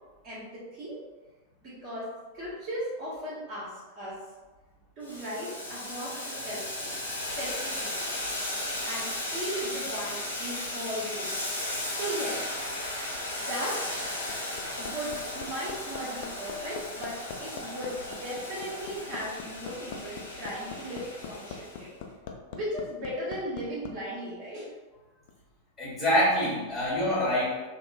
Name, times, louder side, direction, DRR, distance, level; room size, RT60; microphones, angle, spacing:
voice 1, 0.2-1.0 1.6-4.2 5.0-6.9 7.4-8.0 8.8-11.4 12.0-12.4 13.2-13.9 14.8-21.9 22.5-24.7, equal, 35° right, -9 dB, 1.3 m, -37 dB
Boiling, 5.0-21.8, left 1 dB, 80° left, 0.9 m, -36 dB
Hammer, 14.0-23.9 25.3-25.4, left 6 dB, 50° left, 0.5 m, -41 dB
voice 2, 25.8-27.7, equal, 10° left, -8 dB, 1.4 m, -26 dB
3.5 x 2.2 x 4.0 m, 1.2 s
figure-of-eight pair, 90°, 0 cm